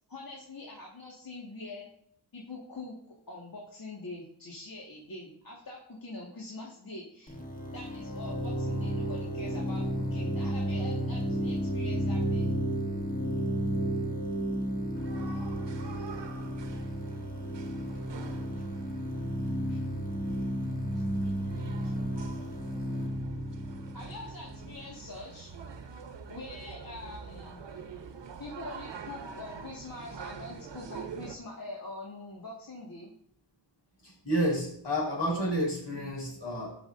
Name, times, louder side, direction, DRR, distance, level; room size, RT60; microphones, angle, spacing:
voice 1, 0.1-1.9 2.3-2.9 3.3-7.4 7.7-12.6 17.9-18.0 18.5-18.6 19.7-19.8 20.9-21.0 21.8-21.9 23.9-25.6 26.3-27.6 28.4-33.1, left 2 dB, 55° left, -4 dB, 1.9 m, -44 dB
sound 1, 7.3-24.9, equal, 20° left, 1.3 m, -33 dB
sound 2, 14.9-31.4, right 6 dB, 80° right, 0.9 m, -46 dB
voice 2, 34.0-36.8, equal, 75° left, -3 dB, 4.4 m, -30 dB
17.0 x 6.0 x 2.6 m, 0.65 s
wide cardioid pair, 110°, 42 cm